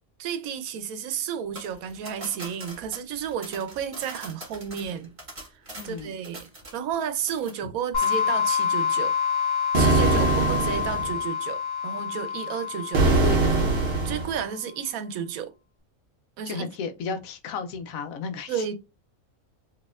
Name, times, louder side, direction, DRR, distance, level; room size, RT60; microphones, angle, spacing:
voice 1, 0.2-5.1 5.8-9.1 9.7-13.2 14.0-15.5 16.4-16.7 18.5-18.7, right 8 dB, 85° right, 1.1 m, -32 dB
sound 1, 1.6-7.0 7.3-7.7 8.0-8.2, right 1 dB, 25° right, 1.3 m, -43 dB
voice 2, 5.7-6.1 13.0-13.7 16.4-18.7, left 5 dB, 80° left, 1.0 m, -33 dB
sound 2, 7.9-14.5, left 7 dB, 30° left, 1.7 m, -27 dB
sound 3, 9.7-11.2 12.9-14.4, right 3 dB, 55° right, 0.9 m, -22 dB
4.1 x 2.9 x 2.3 m
omnidirectional pair, 1.4 m